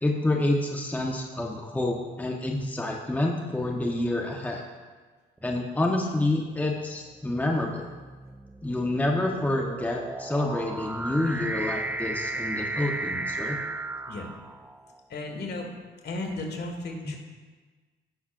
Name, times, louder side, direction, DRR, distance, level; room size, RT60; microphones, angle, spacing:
voice 1, 0.0-4.6 5.4-7.8 8.6-13.6, left 1 dB, 10° left, 1 dB, 0.9 m, -28 dB
sound 1, 5.5-5.9 6.7-14.9, right 2 dB, 10° right, 0.3 m, -35 dB
voice 2, 15.1-15.7 16.0-17.2, left 2 dB, 55° left, 2 dB, 1.8 m, -34 dB
16.0 x 5.9 x 2.5 m, 1.4 s
cardioid pair, 90°, 20 cm